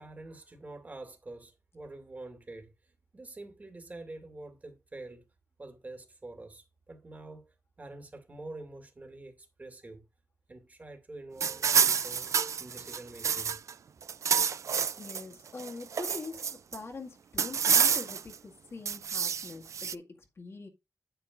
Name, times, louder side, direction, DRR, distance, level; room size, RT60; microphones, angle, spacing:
voice 1, 0.0-2.7 3.1-5.2 5.6-7.5 7.8-10.0 10.5-13.6, right 2 dB, 30° right, 2.3 m, -46 dB
sound 1, 11.4-13.7 14.0-15.2 15.6-16.8 17.4-18.3 18.9-19.9, right 7 dB, 70° right, 0.4 m, -28 dB
voice 2, 15.0-16.4 16.7-20.7, left 3 dB, 55° left, 2.0 m, -43 dB
9.0 x 8.6 x 2.5 m
wide cardioid pair, 135°, 5 cm